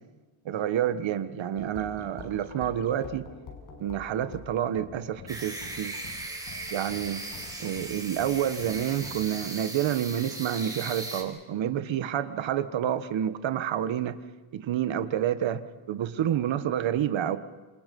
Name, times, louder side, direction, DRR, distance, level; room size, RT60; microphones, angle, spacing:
voice 1, 0.4-3.3 3.8-5.9 6.7-7.2 7.6-14.2 14.5-15.6 15.9-17.4, right 10 dB, 65° right, 11 dB, 1.6 m, -28 dB
sound 1, 1.5-9.3, left 5 dB, 75° left, 6.2 m, -47 dB
sound 2, 5.3-11.2, right 2 dB, 5° right, 4.6 m, -38 dB
28.0 x 28.0 x 5.5 m, 1.2 s
cardioid pair, 140°, 49 cm